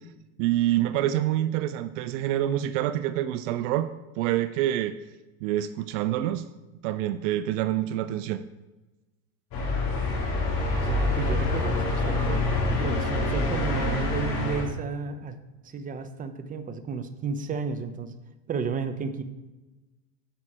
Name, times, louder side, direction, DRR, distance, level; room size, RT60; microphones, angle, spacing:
voice 1, 0.4-3.9 4.2-4.9 5.4-6.4 6.8-8.4, right 13 dB, 60° right, 13 dB, 0.6 m, -26 dB
sound 1, 9.5-14.6, left 2 dB, 50° left, 3.2 m, -26 dB
voice 2, 10.7-15.4 15.6-18.1 18.5-19.2, right 5 dB, 20° right, 9 dB, 0.7 m, -33 dB
9.2 x 6.3 x 4.3 m, 1.1 s
supercardioid pair, 110°, 41 cm